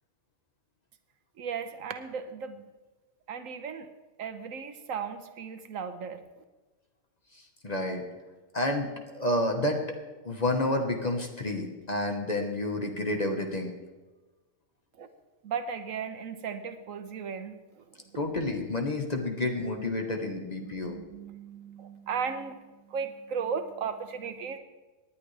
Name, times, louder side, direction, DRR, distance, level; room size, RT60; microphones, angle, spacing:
voice 1, 1.4-2.6 3.3-3.9 4.2-6.3 15.0-15.1 15.4-17.6 20.6-22.6 22.9-24.6, right 6 dB, 80° right, 9 dB, 1.3 m, -36 dB
voice 2, 7.6-8.0 8.5-9.8 10.2-13.7 18.1-21.0, left 1 dB, 30° left, 3 dB, 1.4 m, -29 dB
18.5 x 10.5 x 3.4 m, 1.2 s
omnidirectional pair, 1.4 m